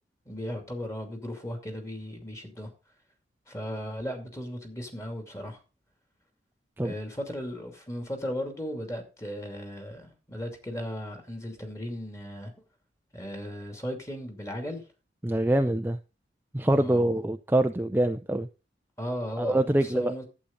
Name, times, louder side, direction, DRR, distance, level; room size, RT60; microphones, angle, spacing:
voice 1, 0.3-2.7 3.5-5.6 6.8-12.5 13.1-14.8 16.7-17.1 19.0-20.2, equal, 15° left, 2.6 m, -36 dB
voice 2, 15.2-16.0 16.5-18.5 19.4-20.1, right 1 dB, 10° right, 0.5 m, -25 dB
11.5 x 8.5 x 4.0 m
head